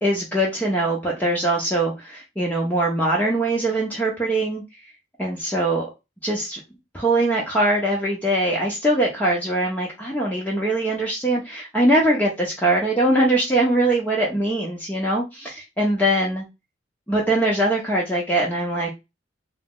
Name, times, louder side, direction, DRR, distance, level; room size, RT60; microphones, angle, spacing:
voice 1, 0.0-4.6 5.2-5.9 6.2-6.6 6.9-16.5 17.1-18.9, right 1 dB, 10° left, -3 dB, 0.6 m, -22 dB
2.9 x 2.0 x 3.6 m, 0.24 s
head